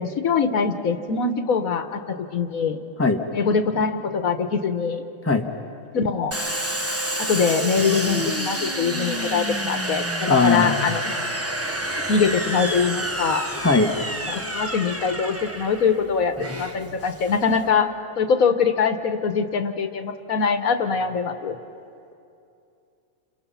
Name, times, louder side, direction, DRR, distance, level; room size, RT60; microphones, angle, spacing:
voice 1, 0.0-2.8 3.3-5.0 5.9-6.3 7.2-11.2 11.9-13.5 14.3-21.6, left 5 dB, 85° left, 8 dB, 1.6 m, -23 dB
Domestic sounds home sounds, 6.3-17.7, right 1 dB, 10° right, 1.2 m, -29 dB
voice 2, 10.3-10.8 13.6-13.9, left 4 dB, 10° left, 3 dB, 1.3 m, -19 dB
30.0 x 27.5 x 5.7 m, 2.6 s
omnidirectional pair, 1.4 m